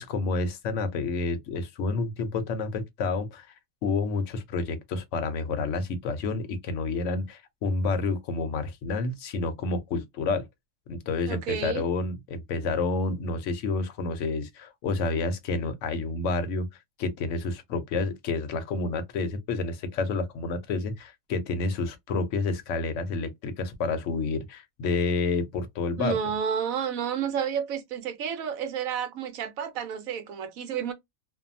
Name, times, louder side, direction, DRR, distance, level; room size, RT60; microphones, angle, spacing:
voice 1, 0.0-3.5 3.8-10.5 10.9-16.7 17.0-26.2, left 3 dB, 70° left, 0.9 m, -29 dB
voice 2, 11.3-11.8 26.0-30.9, right 8 dB, 80° right, 1.1 m, -30 dB
2.6 x 2.2 x 2.5 m
omnidirectional pair, 1.4 m